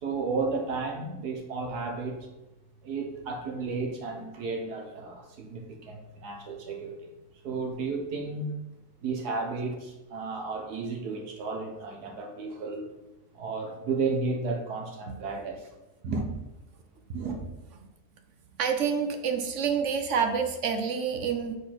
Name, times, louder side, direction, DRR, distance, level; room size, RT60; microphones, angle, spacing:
voice 1, 0.0-2.2 2.8-7.0 7.4-8.5 9.0-12.9 13.3-15.7 16.0-16.3 17.1-17.4, right 4 dB, 80° right, 2 dB, 1.6 m, -33 dB
voice 2, 18.6-21.6, right 6 dB, 60° right, 6 dB, 0.8 m, -28 dB
5.4 x 4.3 x 5.8 m, 0.98 s
omnidirectional pair, 1.7 m